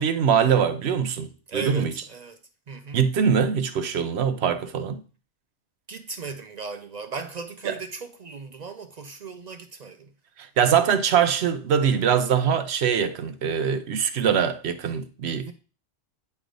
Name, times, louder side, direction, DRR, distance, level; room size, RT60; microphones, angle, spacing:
voice 1, 0.0-1.9 2.9-5.0 7.7-7.8 10.4-15.5, right 7 dB, 85° right, 1.0 m, -23 dB
voice 2, 1.5-2.4 2.7-3.0 5.9-10.1 15.5-15.6, right 5 dB, 55° right, 0.5 m, -37 dB
9.4 x 3.3 x 3.8 m
omnidirectional pair, 1.1 m